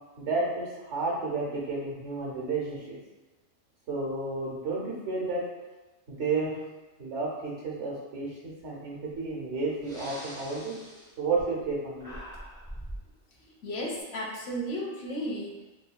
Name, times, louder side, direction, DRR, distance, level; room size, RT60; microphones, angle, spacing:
voice 1, 0.2-3.0 3.9-5.4 6.1-6.6 7.0-10.8 11.2-12.2, right 3 dB, 75° right, -3 dB, 1.1 m, -31 dB
Breathing, 9.2-9.3 9.7-11.7 12.0-13.1, equal, 5° left, 0.5 m, -43 dB
voice 2, 13.6-15.7, equal, 70° left, -1 dB, 0.8 m, -34 dB
3.0 x 2.7 x 2.2 m, 1.1 s
omnidirectional pair, 1.2 m